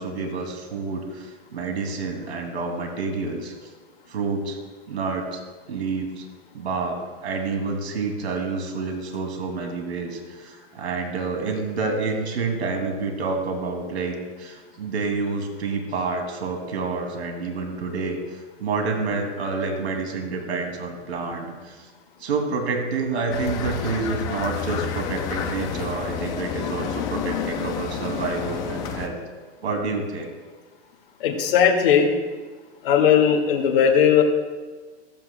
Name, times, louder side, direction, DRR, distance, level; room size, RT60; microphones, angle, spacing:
voice 1, 0.0-3.5 4.1-4.6 4.9-5.4 5.7-6.2 6.5-7.0 7.2-21.9 22.2-29.2 29.6-30.3, right 4 dB, 85° right, 3 dB, 2.5 m, -28 dB
sound 1, 23.3-29.1, left 7 dB, 15° left, 0.3 m, -30 dB
voice 2, 31.2-32.1 32.8-34.2, left 8 dB, 55° left, 0 dB, 2.0 m, -18 dB
15.0 x 14.5 x 2.2 m, 1.3 s
hypercardioid pair, 150°, 32 cm